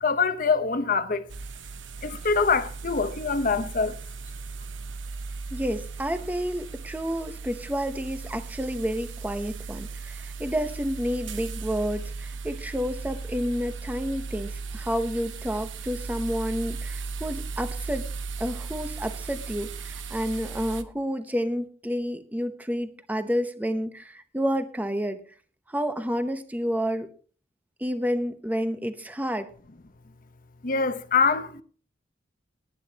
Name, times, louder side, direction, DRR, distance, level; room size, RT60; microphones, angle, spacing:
voice 1, 0.0-1.3 2.0-4.0 30.6-31.6, left 4 dB, 45° left, 0.9 m, -24 dB
Broom Bear Street Cleaner Brushes Aproach Idle Reverse Stop, 1.3-20.8, right 4 dB, 85° right, 1.0 m, -37 dB
voice 2, 5.5-18.1 18.4-25.2 25.7-27.1 27.8-29.5, equal, 10° right, 0.8 m, -30 dB
18.5 x 10.0 x 2.9 m
head